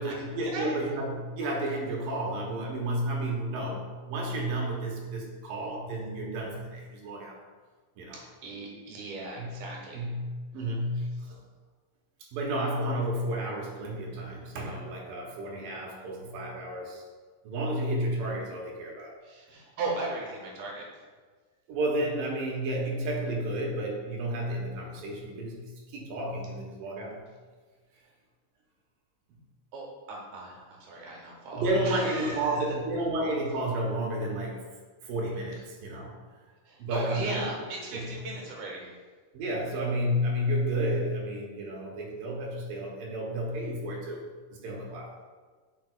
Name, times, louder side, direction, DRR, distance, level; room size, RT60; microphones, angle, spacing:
voice 1, 0.0-7.4 8.0-8.2 9.3-9.5 9.9-10.3 10.5-11.4 12.3-17.0 17.4-19.1 21.7-27.2 31.5-34.7 35.0-36.1 36.8-37.4 37.9-38.1 39.3-45.2, right 1 dB, 90° right, -2 dB, 2.7 m, -31 dB
voice 2, 8.1-10.0 19.2-20.9 29.7-32.6 36.7-38.9, right 2 dB, 70° right, -1 dB, 2.6 m, -37 dB
9.3 x 5.3 x 2.3 m, 1.4 s
omnidirectional pair, 3.8 m